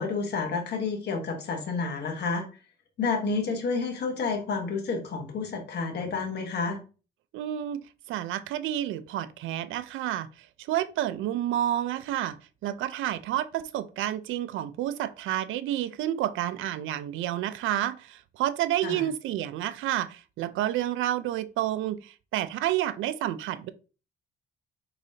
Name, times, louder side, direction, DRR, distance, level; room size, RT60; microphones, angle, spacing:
voice 1, 0.0-2.4 3.0-6.8 18.8-19.1, left 4 dB, 55° left, 1.3 m, -30 dB
voice 2, 7.3-7.8 8.1-10.3 10.7-12.4 12.6-23.7, right 12 dB, 85° right, 0.5 m, -29 dB
4.8 x 3.8 x 2.8 m
cardioid pair, 90°, 20 cm